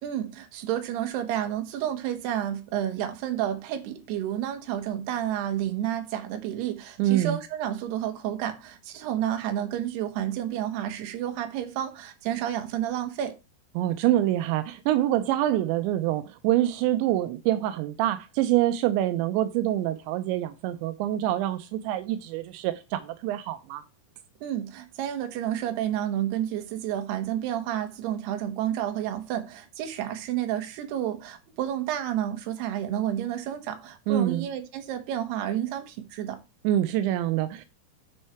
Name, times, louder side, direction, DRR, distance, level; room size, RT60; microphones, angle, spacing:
voice 1, 0.0-13.4 24.4-36.4, right 11 dB, 70° right, 3.3 m, -30 dB
voice 2, 7.0-7.4 13.8-23.8 34.1-34.5 36.6-37.7, right 13 dB, 85° right, 3.0 m, -25 dB
9.8 x 6.5 x 4.4 m
omnidirectional pair, 5.1 m